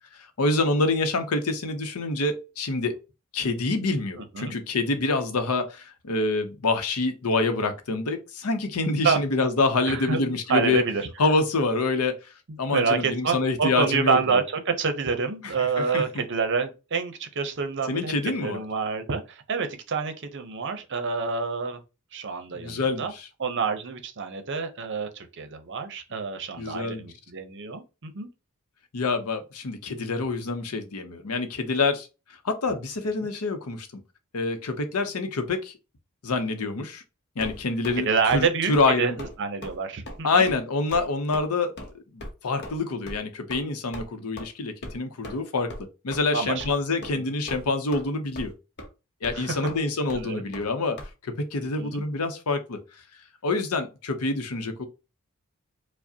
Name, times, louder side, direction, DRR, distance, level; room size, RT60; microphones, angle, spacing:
voice 1, 0.4-3.0 3.3-10.8 11.2-12.2 12.6-14.4 15.4-16.2 17.9-18.6 22.5-23.3 26.6-27.1 28.9-32.1 32.4-34.0 34.3-35.7 36.2-37.0 37.4-39.2 40.2-41.7 42.1-45.7 46.0-48.5 49.2-51.0 51.2-52.8 53.4-54.9, left 3 dB, 75° left, 0.7 m, -26 dB
voice 2, 9.9-11.1 12.7-18.1 18.4-21.8 22.1-23.1 23.4-28.3 33.2-33.3 38.0-40.5 46.3-46.6 47.1-47.3 49.3-49.6 50.1-50.4 51.6-52.0, right 5 dB, 55° right, 0.7 m, -27 dB
sound 1, 37.4-38.0 38.3-38.5 38.7-38.9 39.2-39.3 39.6-39.8 40.1-40.2 40.5-40.6 40.9-41.1 41.3-41.4 41.8-41.9 42.2-42.3 42.6-42.8 43.1-43.2 43.5-43.6 43.9-44.0 44.4-44.5 44.8-45.0 45.2-45.4 45.7-45.8 46.1-46.2 46.6-46.7 47.0-47.2 47.5-48.0 48.3-48.5 48.8-48.9 49.2-49.4 49.7-49.8 50.1-50.2 50.5-50.7 51.0-51.1, left 1 dB, 50° left, 0.8 m, -38 dB
4.8 x 2.1 x 2.7 m
head